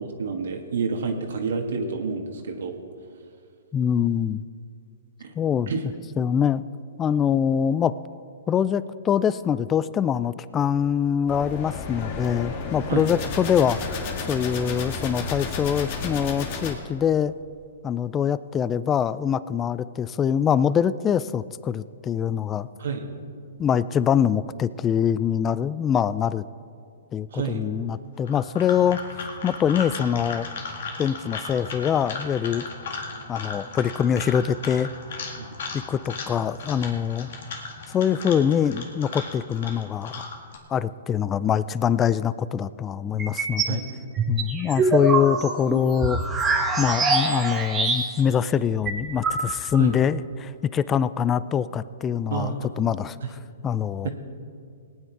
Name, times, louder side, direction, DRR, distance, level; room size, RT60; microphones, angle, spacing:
voice 1, 0.2-2.8 5.2-5.3 5.7-5.8 12.9-13.1 22.8-23.1 27.3-27.6 35.4-35.5 43.7-44.0 49.8-50.0 52.3-52.7 53.2-53.3 54.0-54.1, right 5 dB, 75° right, 3 dB, 1.6 m, -29 dB
voice 2, 3.7-4.4 5.4-5.7 6.2-6.6 7.0-7.9 8.5-17.3 17.8-22.7 23.6-26.4 27.1-30.5 31.0-32.6 33.3-34.9 35.7-37.3 37.9-40.2 40.7-43.8 44.3-46.2 46.8-53.2 53.6-54.1, left 8 dB, 20° left, 17 dB, 0.3 m, -24 dB
sound 1, 11.3-16.8, left 4 dB, 40° left, 1.7 m, -32 dB
sound 2, 28.2-40.6, left 4 dB, 65° left, 1.9 m, -36 dB
sound 3, 43.2-43.8 44.2-48.3 48.6-48.7 48.9-49.8, right 3 dB, 15° right, 1.4 m, -24 dB
19.0 x 9.2 x 4.7 m, 2.3 s
hypercardioid pair, 140°, 0 cm